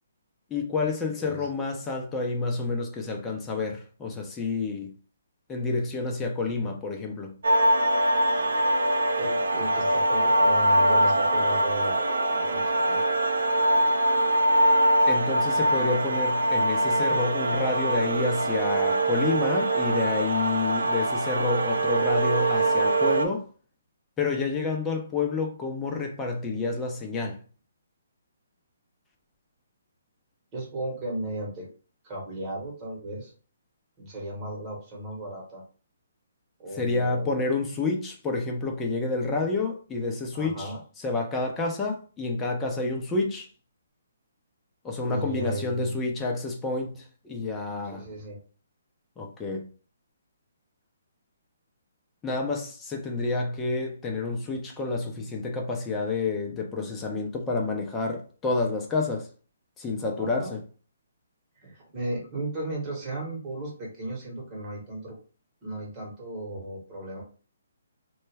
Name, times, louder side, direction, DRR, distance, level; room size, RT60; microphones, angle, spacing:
voice 1, 0.5-4.9 5.5-7.3 15.1-23.5 24.2-27.4 36.8-40.7 41.0-43.5 44.8-48.0 49.2-49.6 52.2-59.3 59.8-60.6, left 3 dB, 15° left, 0.6 m, -29 dB
sound 1, 7.4-23.3, right 1 dB, 75° right, 0.4 m, -23 dB
voice 2, 9.2-13.0 30.5-31.7 32.0-33.3 34.0-35.6 36.6-37.4 40.3-40.8 45.0-46.0 47.9-48.4 60.1-60.5 61.6-65.2 65.6-67.2, right 1 dB, 25° right, 1.1 m, -35 dB
2.3 x 2.1 x 3.3 m
hypercardioid pair, 145°, 0 cm